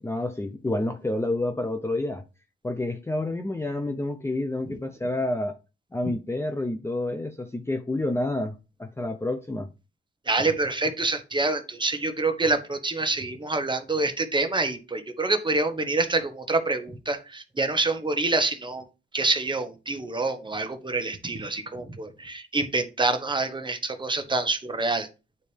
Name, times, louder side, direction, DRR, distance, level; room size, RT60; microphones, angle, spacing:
voice 1, 0.0-2.2 2.6-5.6 5.9-8.5 8.8-9.7, left 2 dB, 10° left, 0.6 m, -29 dB
voice 2, 10.3-18.8 19.1-25.1, right 3 dB, 20° right, 1.2 m, -26 dB
9.3 x 4.1 x 3.4 m
cardioid pair, 85°, 21 cm